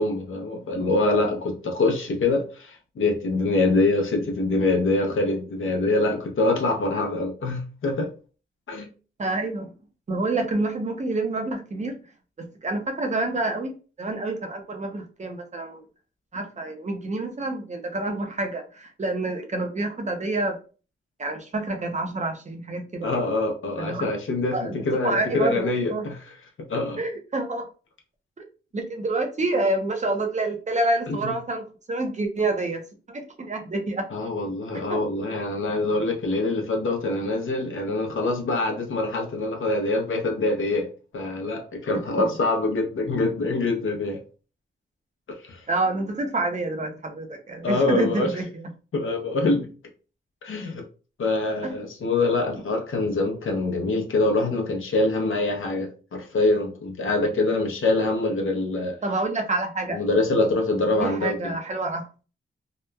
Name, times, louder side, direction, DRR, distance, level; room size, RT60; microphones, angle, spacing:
voice 1, 0.0-8.1 8.7-8.9 23.0-26.2 26.7-27.0 31.1-31.3 34.1-44.2 45.4-45.6 47.6-48.3 48.9-49.7 50.4-50.8 51.2-59.0 59.9-61.5, left 2 dB, 70° left, 0.6 m, -24 dB
voice 2, 9.2-9.7 10.1-11.9 12.4-15.8 16.3-20.6 21.2-23.2 23.8-24.1 24.5-24.8 25.0-26.0 27.0-27.7 28.7-32.8 33.1-34.1 34.7-35.0 42.2-42.3 45.7-48.5 51.6-51.7 59.0-60.0 61.0-62.1, right 2 dB, 35° right, 0.6 m, -28 dB
2.9 x 2.1 x 2.2 m
wide cardioid pair, 100°, 21 cm